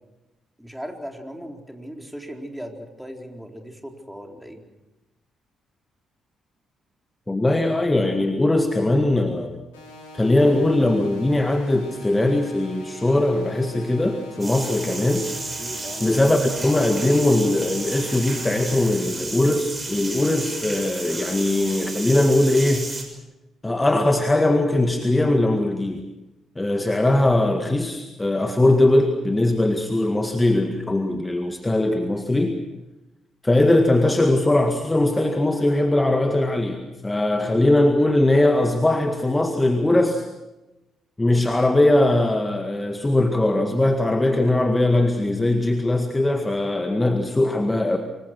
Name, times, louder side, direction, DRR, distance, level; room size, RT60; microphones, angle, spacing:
voice 1, 0.6-4.6 15.6-16.1, equal, 5° right, 2 dB, 4.2 m, -37 dB
voice 2, 7.3-9.5 10.1-15.3 16.0-22.9 23.6-26.0 26.6-32.6 33.4-40.2 41.2-48.0, left 1 dB, 15° left, 6 dB, 1.9 m, -20 dB
sound 1, 9.7-18.7, equal, 80° left, 5.2 m, -43 dB
sound 2, 14.4-23.0, right 2 dB, 30° right, 6.3 m, -33 dB
25.5 x 22.0 x 6.3 m, 1.0 s
figure-of-eight pair, 40°, 0 cm